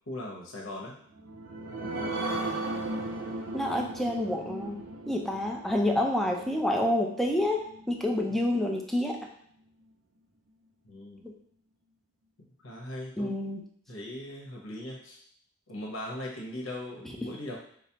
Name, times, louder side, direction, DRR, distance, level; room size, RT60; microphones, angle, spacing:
voice 1, 0.1-0.9 8.3-8.4 10.8-11.2 12.4-13.5 13.9-15.2 15.7-17.6, left 1 dB, 80° left, -2 dB, 1.0 m, -39 dB
sound 1, 1.1-8.2 8.7-8.8 9.1-9.2, right 2 dB, 80° right, 0.5 m, -37 dB
voice 2, 3.5-4.8 5.1-9.2 11.2-11.3 13.2-13.6, left 1 dB, ahead, 0 dB, 0.4 m, -28 dB
4.8 x 2.0 x 2.8 m, 0.62 s
head